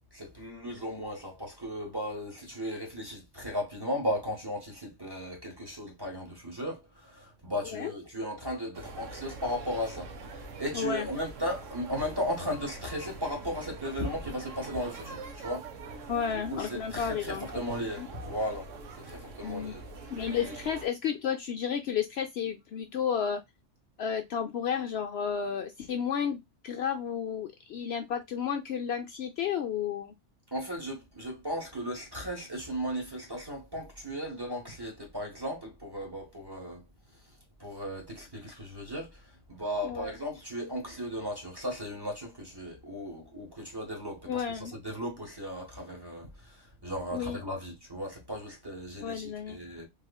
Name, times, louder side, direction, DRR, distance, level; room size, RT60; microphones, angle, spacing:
voice 1, 0.1-10.1 10.6-15.7 16.3-18.7 19.0-19.9 30.5-36.8 37.6-39.2 39.5-49.9, equal, 20° right, 1.4 m, -36 dB
sound 1, 8.7-20.9, right 3 dB, 85° right, 1.2 m, -44 dB
voice 2, 10.7-11.1 16.1-17.6 18.0-18.1 19.4-19.7 20.1-23.4 24.0-30.1 39.8-40.1 44.3-44.8 47.1-47.4 49.0-49.6, left 7 dB, 65° left, 0.7 m, -32 dB
3.5 x 3.2 x 2.3 m
omnidirectional pair, 1.3 m